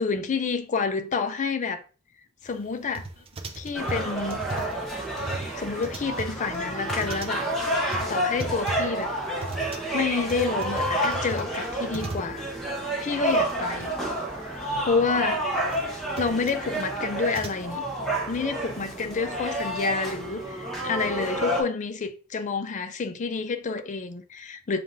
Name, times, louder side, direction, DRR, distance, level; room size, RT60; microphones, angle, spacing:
voice 1, 0.0-1.8 2.4-3.1 3.6-4.4 5.5-7.4 8.1-9.1 9.9-12.5 13.0-14.0 14.5-15.4 16.2-17.8 18.3-24.8, left 4 dB, 35° left, 0.4 m, -29 dB
sound 1, 3.0-12.8 13.0-13.1 13.3-13.9 14.2-17.6, right 2 dB, 25° right, 0.4 m, -38 dB
sound 2, 3.7-21.6, right 1 dB, ahead, 0.9 m, -30 dB
7.0 x 2.5 x 2.5 m
head